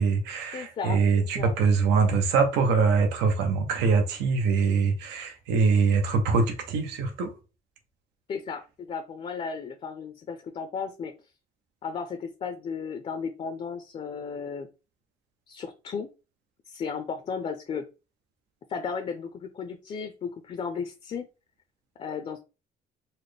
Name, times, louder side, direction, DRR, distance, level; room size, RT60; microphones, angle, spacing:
voice 1, 0.0-7.3, right 5 dB, 90° right, 0.7 m, -23 dB
voice 2, 0.5-1.5 8.3-11.1 11.8-14.7 15.5-16.1 16.7-17.8 18.7-21.3 22.0-22.4, left 6 dB, 35° left, 0.5 m, -34 dB
4.1 x 2.1 x 3.2 m
cardioid pair, 110°, 17 cm